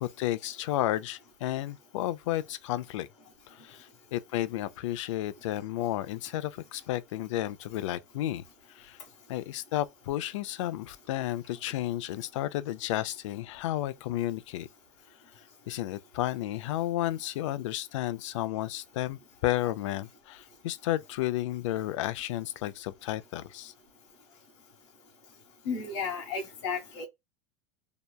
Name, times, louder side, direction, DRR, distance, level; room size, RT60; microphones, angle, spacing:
voice 1, 0.0-3.1 3.5-8.4 8.7-9.0 9.3-14.7 15.7-23.7, left 14 dB, 90° left, 0.4 m, -32 dB
voice 2, 25.6-27.0, left 5 dB, 65° left, 1.1 m, -33 dB
2.9 x 2.2 x 2.2 m
supercardioid pair, 180°, 15 cm